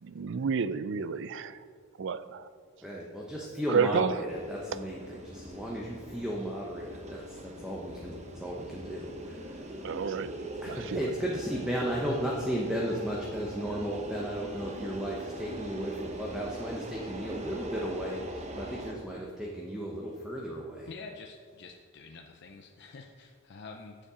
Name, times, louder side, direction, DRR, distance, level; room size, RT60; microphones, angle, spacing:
voice 1, 0.0-1.6 2.0-2.4 3.7-4.1 9.8-10.3 10.7-11.0, right 6 dB, 60° right, 14 dB, 0.4 m, -30 dB
voice 2, 2.8-8.1 8.4-9.4 10.6-18.2 18.6-20.9, equal, 5° right, -3 dB, 0.9 m, -34 dB
sound 1, 4.3-18.9, equal, 35° right, 0.8 m, -42 dB
voice 3, 20.9-24.0, left 4 dB, 55° left, 3 dB, 0.5 m, -47 dB
9.7 x 7.3 x 4.9 m, 2.1 s
head